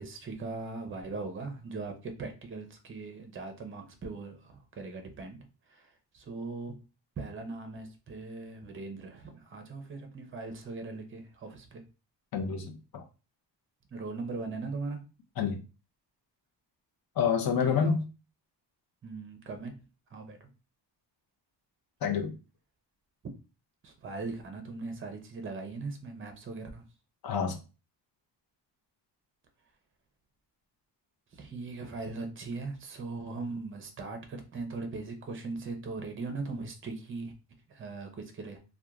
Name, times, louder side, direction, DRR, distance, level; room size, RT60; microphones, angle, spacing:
voice 1, 0.0-5.4 6.1-6.7 7.2-11.8 13.9-15.0 17.6-17.9 19.0-19.8 20.1-20.4 23.8-26.8 31.4-37.3 37.7-38.6, right 3 dB, 30° right, 0.5 m, -39 dB
voice 2, 12.3-13.0 15.4-15.6 17.2-18.0 22.0-22.3 27.2-27.6, left 6 dB, 55° left, 0.7 m, -28 dB
2.9 x 2.3 x 2.4 m
wide cardioid pair, 155°, 44 cm